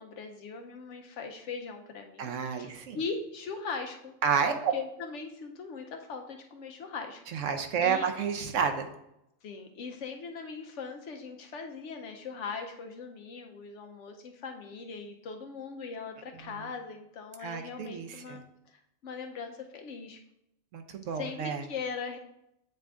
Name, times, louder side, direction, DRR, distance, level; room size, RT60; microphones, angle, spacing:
voice 1, 0.0-4.2 4.5-7.2 7.8-8.1 9.4-18.4 19.0-20.2 21.1-22.2, left 5 dB, 70° left, 4 dB, 1.0 m, -40 dB
voice 2, 2.2-3.0 4.2-4.7 7.3-8.9 17.4-18.4 20.7-21.6, right 6 dB, 75° right, 6 dB, 1.0 m, -30 dB
8.2 x 3.7 x 3.5 m, 0.82 s
omnidirectional pair, 1.3 m